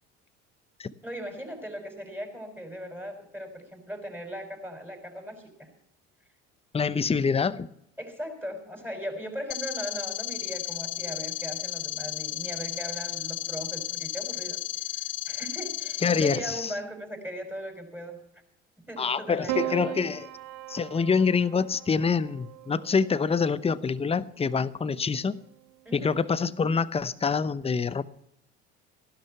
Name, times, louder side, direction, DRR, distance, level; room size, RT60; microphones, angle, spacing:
voice 1, 1.0-5.7 8.0-14.6 14.9-18.2 18.9-19.8 25.9-26.2, equal, 5° right, 5.6 m, -38 dB
voice 2, 6.7-7.7 16.0-16.7 19.0-20.3 20.7-25.4 25.9-28.0, left 5 dB, 20° left, 0.8 m, -26 dB
sound 1, 9.5-16.4, left 16 dB, 80° left, 0.7 m, -34 dB
Piano, 19.5-23.9 25.1-25.8, right 17 dB, 60° right, 0.9 m, -37 dB
15.5 x 12.0 x 5.7 m
hypercardioid pair, 70°, 33 cm